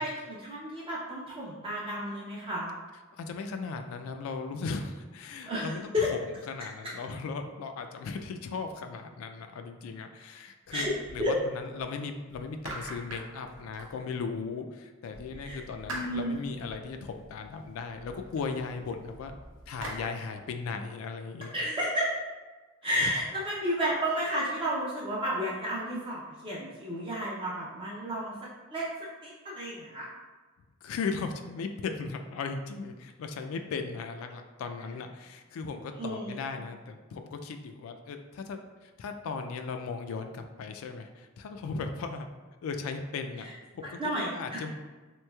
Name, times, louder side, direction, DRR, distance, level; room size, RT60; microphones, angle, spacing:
voice 1, 0.0-2.8 5.5-5.7 5.9-6.1 6.8-6.9 10.7-10.9 11.2-11.3 15.4-15.6 15.9-16.4 21.5-22.1 22.8-28.3 28.7-28.9 29.2-30.1 36.0-36.5 43.4-43.5 44.0-44.6, equal, 25° right, -6 dB, 0.4 m, -32 dB
voice 2, 3.2-6.2 6.5-10.9 11.1-19.4 19.7-21.6 23.0-23.1 30.8-42.3 42.6-43.5 43.7-44.7, left 4 dB, 90° left, 7 dB, 0.3 m, -37 dB
sound 1, 10.7-11.9 12.3-14.5 15.1-20.1, right 1 dB, 75° right, 0.7 m, -45 dB
3.1 x 3.0 x 2.2 m, 1.3 s
head